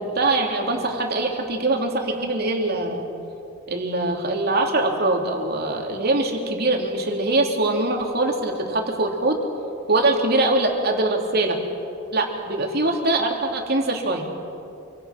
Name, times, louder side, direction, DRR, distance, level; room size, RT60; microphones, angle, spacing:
voice 1, 0.0-3.1 3.7-9.4 9.9-11.6 12.1-14.2, right 2 dB, 50° right, 2 dB, 3.1 m, -23 dB
28.0 x 24.0 x 6.0 m, 2.6 s
head